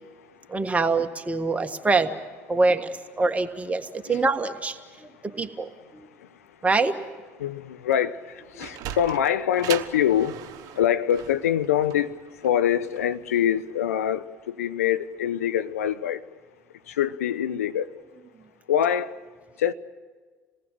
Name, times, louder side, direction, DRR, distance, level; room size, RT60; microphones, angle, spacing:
voice 1, 0.5-2.1 2.5-6.1 6.6-7.0, right 3 dB, 15° right, 1.6 m, -25 dB
voice 2, 7.4-16.2 16.9-17.9 18.7-19.1 19.6-19.7, left 10 dB, 75° left, 0.7 m, -25 dB
Sliding door, 8.3-13.5, right 11 dB, 55° right, 1.1 m, -38 dB
27.0 x 19.0 x 7.8 m
figure-of-eight pair, 60°, 8 cm